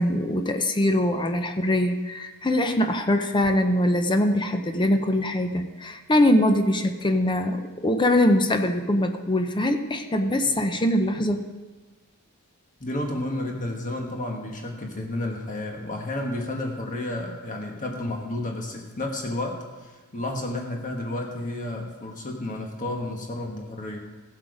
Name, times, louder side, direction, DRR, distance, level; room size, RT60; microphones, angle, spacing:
voice 1, 0.0-11.5, left 1 dB, 20° left, 6 dB, 0.7 m, -23 dB
voice 2, 12.8-24.0, left 1 dB, 35° left, 1 dB, 1.4 m, -31 dB
16.0 x 7.9 x 5.0 m, 1.3 s
head